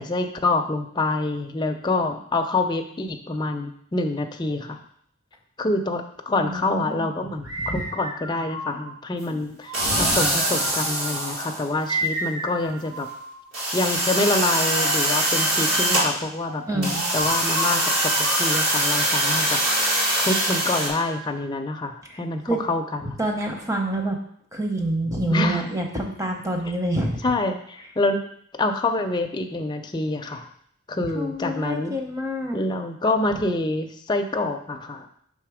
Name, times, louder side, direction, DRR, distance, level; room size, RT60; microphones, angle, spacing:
voice 1, 0.0-4.8 5.6-13.1 13.7-19.6 20.2-23.2 25.3-25.6 27.2-28.2 28.6-30.5 30.9-31.9 32.5-35.1, left 2 dB, 20° left, 4 dB, 0.4 m, -26 dB
voice 2, 6.4-7.1 7.6-7.8 16.7-17.0 22.1-22.2 22.5-22.6 23.2-24.2 24.5-27.3 31.1-32.6, right 1 dB, 15° right, 2 dB, 0.7 m, -27 dB
sound 1, 7.4-9.0 9.6-11.2 11.9-13.5 14.2-15.4 16.5-19.2 19.7-21.5, right 1 dB, 80° right, 1.0 m, -33 dB
sound 2, 9.7-11.9 12.7-12.8 13.1-13.2 13.5-16.1 16.8-20.9, right 1 dB, 65° right, 1.7 m, -23 dB
5.7 x 3.7 x 4.8 m, 0.66 s
head